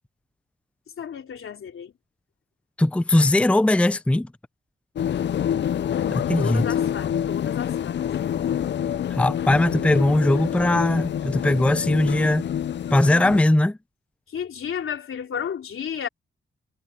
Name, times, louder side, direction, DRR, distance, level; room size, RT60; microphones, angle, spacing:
voice 1, 1.0-1.9 5.1-5.3 6.4-8.1 14.3-16.1, left 8 dB, 85° left, 3.5 m, -32 dB
voice 2, 2.8-4.3 6.1-6.7 9.1-12.5 12.9-13.8, left 1 dB, 5° left, 0.5 m, -20 dB
sound 1, 5.0-13.4, left 9 dB, 60° left, 0.4 m, -27 dB
wide cardioid pair, 110°, 21 cm